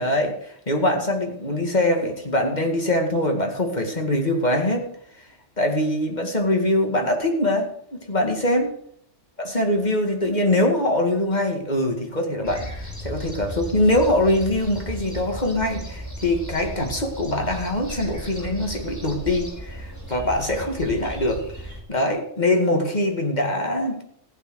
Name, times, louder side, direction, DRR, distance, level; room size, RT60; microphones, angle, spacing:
voice 1, 0.0-5.3 5.6-8.7 9.4-24.0, left 1 dB, 35° left, 3 dB, 2.3 m, -23 dB
sound 1, 12.4-21.8, right 1 dB, 15° left, 4.0 m, -35 dB
15.0 x 9.2 x 6.4 m, 0.67 s
omnidirectional pair, 1.3 m